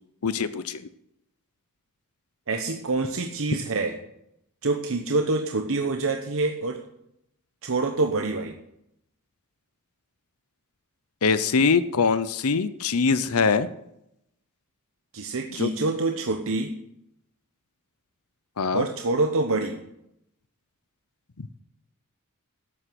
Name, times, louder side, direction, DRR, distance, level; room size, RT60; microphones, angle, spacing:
voice 1, 0.2-0.9 11.2-13.7 15.6-15.7 18.6-18.9 21.4-21.5, left 5 dB, 75° left, 14 dB, 0.7 m, -23 dB
voice 2, 2.5-4.0 4.6-6.8 7.6-8.5 15.1-16.8 18.7-19.8, right 3 dB, 65° right, 5 dB, 1.0 m, -26 dB
12.0 x 8.1 x 7.7 m, 0.79 s
head